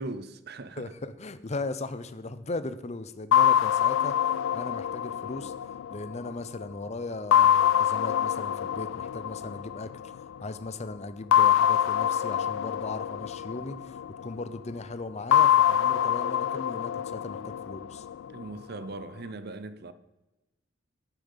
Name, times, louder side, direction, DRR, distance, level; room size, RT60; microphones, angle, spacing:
voice 1, 0.0-0.9 18.3-19.9, right 2 dB, 55° right, 0.7 m, -39 dB
voice 2, 0.8-4.2 4.5-5.5 5.9-9.9 10.4-18.1, left 2 dB, 35° left, 0.7 m, -37 dB
sound 1, 3.3-6.6 7.3-10.2 11.3-14.4 15.3-18.4, left 10 dB, 85° left, 0.3 m, -25 dB
9.3 x 8.6 x 5.6 m
head